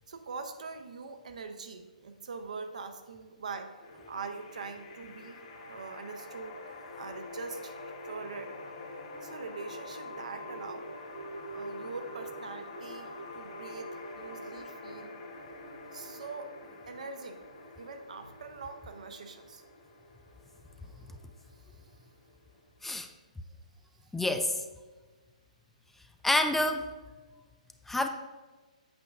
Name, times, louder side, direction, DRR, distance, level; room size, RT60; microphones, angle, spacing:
voice 1, 0.1-5.4 5.7-6.6 7.0-7.8 8.0-8.5 9.2-10.9 11.5-15.2 15.9-16.5 16.9-17.4 17.7-19.6, right 4 dB, 65° right, 7 dB, 0.8 m, -43 dB
sound 1, 3.8-22.8, left 1 dB, 50° left, 2.2 m, -45 dB
voice 2, 24.1-24.6 26.2-26.9 27.9-28.1, left 2 dB, 5° left, 7 dB, 0.3 m, -27 dB
8.5 x 7.7 x 2.5 m, 1.3 s
figure-of-eight pair, 125°, 4 cm